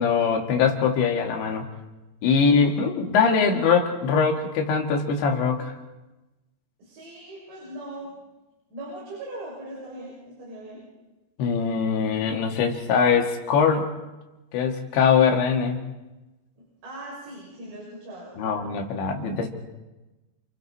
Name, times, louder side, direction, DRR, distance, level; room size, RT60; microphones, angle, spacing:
voice 1, 0.0-1.7 2.2-5.7 11.4-13.9 14.5-15.8 18.4-19.5, left 6 dB, 75° left, 2 dB, 4.4 m, -22 dB
voice 2, 6.8-8.2 8.7-10.8 16.6-18.6, right 1 dB, 70° right, -7 dB, 8.6 m, -40 dB
29.5 x 28.5 x 4.3 m, 1.1 s
omnidirectional pair, 5.2 m